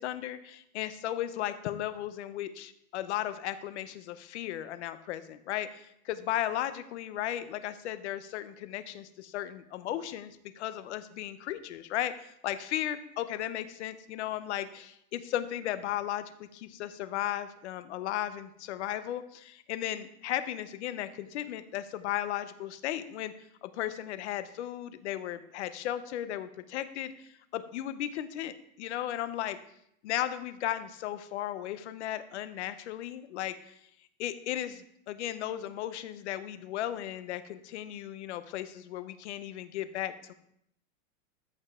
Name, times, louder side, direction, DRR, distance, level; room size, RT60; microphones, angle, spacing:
voice 1, 0.0-16.2 16.5-23.3 23.6-29.6 30.0-33.7 34.2-40.3, left 12 dB, 50° left, 12 dB, 0.8 m, -35 dB
14.0 x 5.2 x 3.6 m, 0.74 s
supercardioid pair, 170°, 44 cm